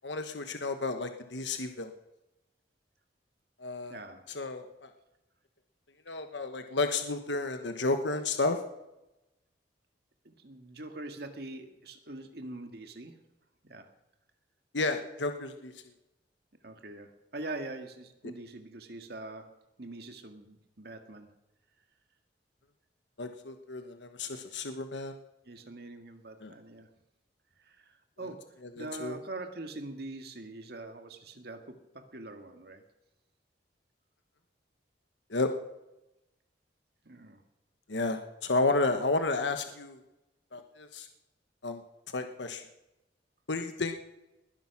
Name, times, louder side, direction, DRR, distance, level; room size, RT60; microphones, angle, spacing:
voice 1, 0.0-1.9 3.6-4.0 4.3-4.9 6.1-8.6 14.7-15.7 23.2-25.2 26.4-26.5 28.8-29.2 35.3-35.5 37.9-40.0 40.5-41.1 41.6-41.8 42.1-42.6 43.5-44.1, left 3 dB, 85° left, 7 dB, 1.2 m, -32 dB
voice 2, 3.9-4.2 10.2-13.2 13.6-13.9 16.6-19.5 19.8-21.3 25.5-26.9 27.6-32.8 37.0-37.4, right 2 dB, 60° right, 6 dB, 1.9 m, -43 dB
20.5 x 10.5 x 6.0 m, 0.94 s
head